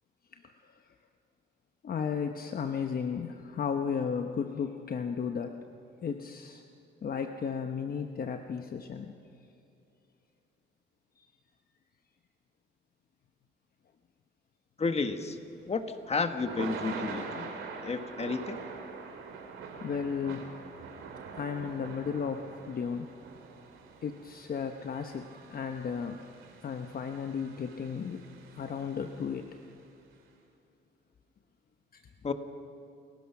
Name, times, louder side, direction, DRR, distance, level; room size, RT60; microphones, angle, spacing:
voice 1, 0.3-0.7 1.8-5.6 6.0-6.6 7.0-9.1 11.2-11.3 19.8-20.6 21.4-23.1 24.0-26.2 26.6-28.2 28.5-29.5 31.9-32.0, left 6 dB, 50° left, 6 dB, 1.0 m, -34 dB
voice 2, 14.8-15.4 15.7-17.5 17.8-18.6 32.2-32.3, left 4 dB, 30° left, 8 dB, 1.5 m, -31 dB
Thunder / Rain, 15.5-29.7, right 5 dB, 80° right, 2.8 m, -44 dB
29.5 x 15.5 x 5.9 m, 2.7 s
cardioid pair, 90°, 20 cm